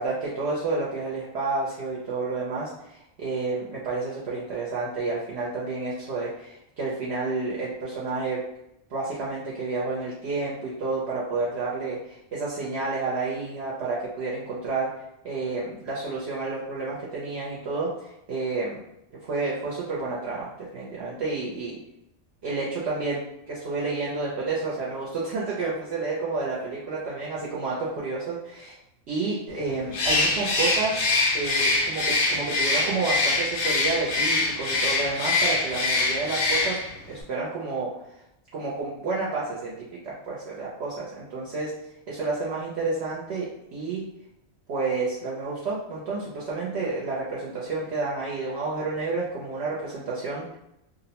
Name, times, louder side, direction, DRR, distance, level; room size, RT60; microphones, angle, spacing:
voice 1, 0.0-8.4 8.9-14.9 15.2-18.8 19.2-21.8 22.4-28.8 29.1-31.0 31.3-36.8 37.1-37.9 38.5-39.7 40.0-41.7 42.1-44.0 44.7-50.4, right 3 dB, 65° right, -6 dB, 0.8 m, -30 dB
Bird, 29.9-37.0, left 3 dB, 85° left, 1.0 m, -24 dB
2.5 x 2.0 x 2.8 m, 0.81 s
omnidirectional pair, 1.3 m